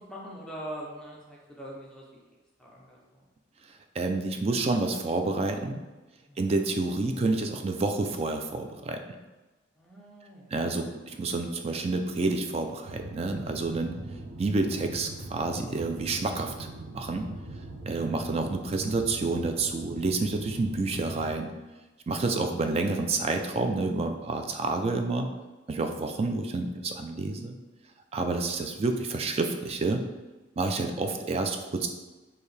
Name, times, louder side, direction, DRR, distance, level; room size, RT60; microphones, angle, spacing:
voice 1, 0.0-2.1 2.6-3.2 6.3-6.5 9.8-10.5 26.2-26.5, right 1 dB, 5° left, -4 dB, 0.7 m, -43 dB
voice 2, 4.0-5.8 6.4-9.0 10.5-13.9 14.4-17.3 17.9-21.5 22.1-25.3 25.7-27.6 28.1-30.0 30.6-31.9, right 3 dB, 30° right, 5 dB, 0.3 m, -29 dB
sound 1, 12.8-21.3, right 2 dB, 80° right, 0.6 m, -41 dB
4.5 x 2.8 x 3.3 m, 1.2 s
head